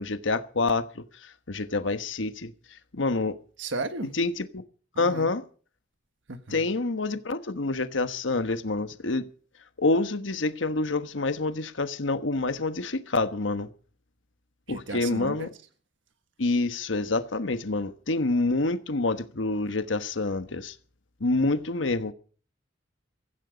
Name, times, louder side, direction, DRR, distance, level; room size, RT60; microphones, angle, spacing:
voice 1, 0.0-3.4 4.1-4.6 5.0-5.4 6.5-9.3 9.8-13.7 14.7-15.5 16.4-20.8 21.2-22.1, left 3 dB, 90° left, 1.3 m, -27 dB
voice 2, 3.6-4.1 4.9-5.3 6.3-6.7 14.7-15.5, right 3 dB, 80° right, 1.5 m, -35 dB
16.5 x 15.0 x 5.1 m
head